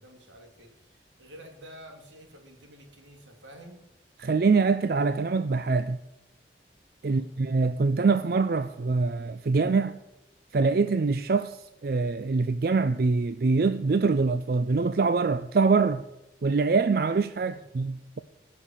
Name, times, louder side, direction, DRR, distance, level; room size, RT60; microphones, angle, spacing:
voice 1, 0.0-3.8 7.0-7.3 17.4-17.6, equal, 85° right, 3.1 m, -50 dB
voice 2, 4.2-6.0 7.0-10.0 10.5-16.0 16.4-18.2, right 4 dB, 55° right, 0.4 m, -24 dB
19.5 x 6.6 x 7.3 m
head